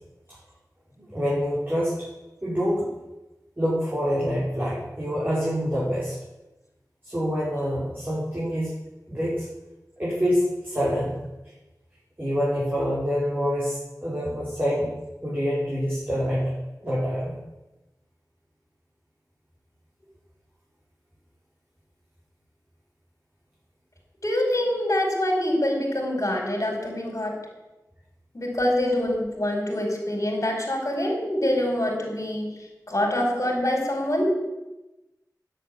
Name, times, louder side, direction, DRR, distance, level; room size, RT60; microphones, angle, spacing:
voice 1, 1.0-1.9 2.4-2.9 3.6-6.2 7.0-8.7 9.1-9.5 10.0-11.2 12.2-14.9 15.2-16.5 16.8-17.4, equal, 30° right, -8 dB, 5.5 m, -26 dB
voice 2, 24.2-27.4 28.3-32.5 32.9-34.2, left 1 dB, 45° left, 1 dB, 5.1 m, -25 dB
10.0 x 10.0 x 9.8 m, 1.0 s
wide cardioid pair, 55°, 7 cm